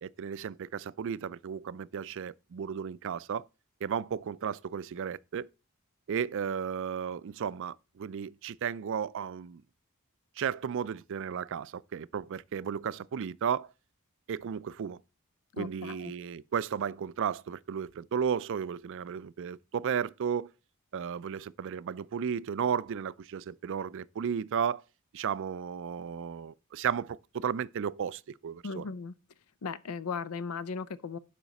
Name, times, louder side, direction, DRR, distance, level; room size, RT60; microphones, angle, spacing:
voice 1, 0.0-3.4 3.8-5.5 6.1-9.6 10.4-13.7 14.3-15.0 15.6-20.5 20.9-24.8 25.1-28.9, right 7 dB, 60° right, 0.4 m, -34 dB
voice 2, 15.6-16.1 28.6-29.1 29.6-31.2, left 5 dB, 80° left, 0.6 m, -37 dB
12.0 x 5.0 x 4.1 m
head